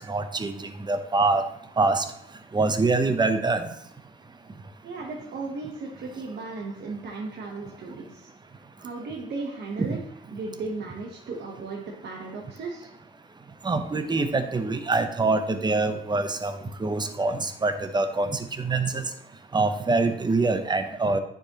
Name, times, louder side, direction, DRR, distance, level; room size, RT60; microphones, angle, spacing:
voice 1, 0.1-0.5 0.9-1.4 1.8-2.0 2.5-3.6 9.8-9.9 13.6-16.5 16.8-18.3 18.6-18.9 19.5-21.2, right 3 dB, 20° right, 8 dB, 0.8 m, -24 dB
voice 2, 4.8-8.3 8.8-10.0 10.3-12.9, right 3 dB, 60° right, -1 dB, 1.1 m, -35 dB
9.3 x 4.9 x 3.0 m, 0.73 s
cardioid pair, 90°, 20 cm